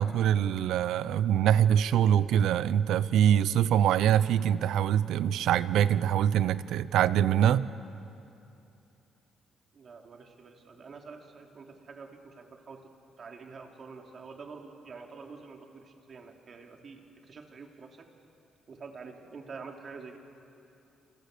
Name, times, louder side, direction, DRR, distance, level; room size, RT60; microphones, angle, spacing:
voice 1, 0.0-7.7, right 10 dB, 80° right, 16 dB, 0.8 m, -24 dB
voice 2, 9.7-12.9 13.2-18.1 18.7-20.2, right 4 dB, 45° right, 2 dB, 3.3 m, -47 dB
28.0 x 26.5 x 6.9 m, 2.8 s
cardioid pair, 90°, 0 cm